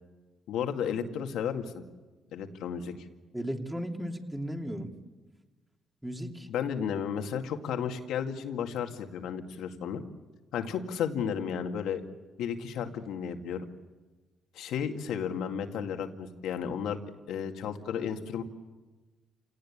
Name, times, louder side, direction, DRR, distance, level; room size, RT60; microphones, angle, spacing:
voice 1, 0.5-1.8 2.3-2.9 6.5-10.0 10.5-12.0 12.4-13.7 14.5-17.0 17.3-18.4, left 7 dB, 85° left, 5 dB, 2.2 m, -33 dB
voice 2, 3.3-4.9 6.0-6.5, equal, 5° right, 3 dB, 3.1 m, -35 dB
28.5 x 18.5 x 8.7 m, 1.2 s
cardioid pair, 90°, 0 cm